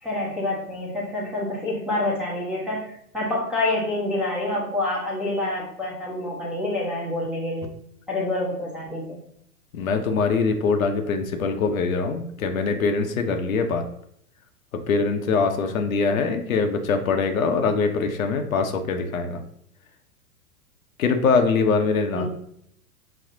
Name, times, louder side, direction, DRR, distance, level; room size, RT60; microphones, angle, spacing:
voice 1, 0.0-7.7 8.1-9.2 22.1-22.3, left 2 dB, ahead, -7 dB, 0.6 m, -27 dB
voice 2, 9.7-13.8 14.7-19.4 21.0-22.3, left 4 dB, 60° left, 6 dB, 0.6 m, -23 dB
6.0 x 2.0 x 2.6 m, 0.71 s
figure-of-eight pair, 105°, 46 cm